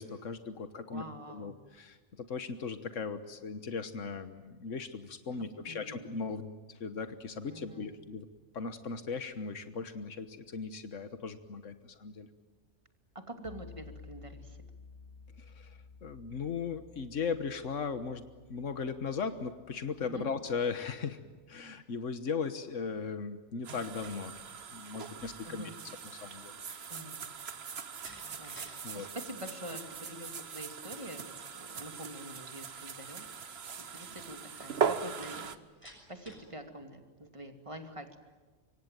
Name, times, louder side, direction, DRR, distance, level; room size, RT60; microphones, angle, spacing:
voice 1, 0.0-1.0 1.3-8.3 8.5-12.3 15.4-21.2 21.5-24.3 24.7-25.7 26.2-26.8 28.4-29.1, left 5 dB, 85° left, 10 dB, 1.6 m, -38 dB
voice 2, 0.9-1.6 5.3-6.2 7.5-8.1 13.1-14.6 20.0-20.3 25.4-25.7 26.9-27.2 28.4-35.6 35.8-38.2, right 1 dB, 25° right, 6 dB, 2.7 m, -46 dB
sound 1, 13.4-21.6, left 4 dB, 55° left, 1.5 m, -54 dB
sound 2, 23.6-35.6, right 6 dB, 55° right, 1.3 m, -40 dB
Slam, 27.7-28.8 29.1-29.6 35.2-36.5, equal, 10° left, 7.0 m, -53 dB
25.5 x 24.5 x 9.1 m, 1.3 s
omnidirectional pair, 1.3 m